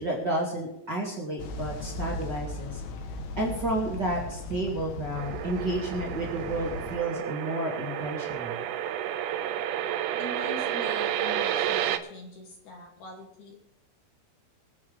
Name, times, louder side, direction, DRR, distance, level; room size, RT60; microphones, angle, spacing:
voice 1, 0.0-2.8 3.4-8.6, right 1 dB, 30° right, -4 dB, 2.5 m, -31 dB
sound 1, 1.4-7.0, left 2 dB, 90° left, 3.3 m, -37 dB
sound 2, 5.2-12.0, right 10 dB, 80° right, 1.9 m, -31 dB
voice 2, 10.2-13.6, left 2 dB, 55° left, -1 dB, 3.9 m, -43 dB
25.5 x 8.6 x 3.5 m, 0.80 s
omnidirectional pair, 4.5 m